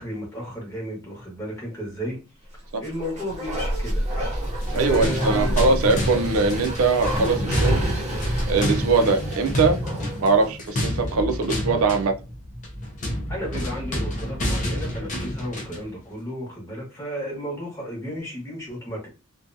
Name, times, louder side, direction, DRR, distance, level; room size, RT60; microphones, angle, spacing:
voice 1, 0.0-2.2 2.5-4.1 4.7-5.6 5.9-6.1 13.3-19.1, equal, 15° left, 1.0 m, -33 dB
Bark, 2.8-10.3 10.7-10.8, equal, 30° right, 0.7 m, -28 dB
sound 1, 4.5-15.9, equal, 35° left, 0.5 m, -28 dB
voice 2, 4.7-7.8 8.5-9.8 10.2-12.2, right 4 dB, 75° right, 0.4 m, -21 dB
2.6 x 2.2 x 2.5 m
head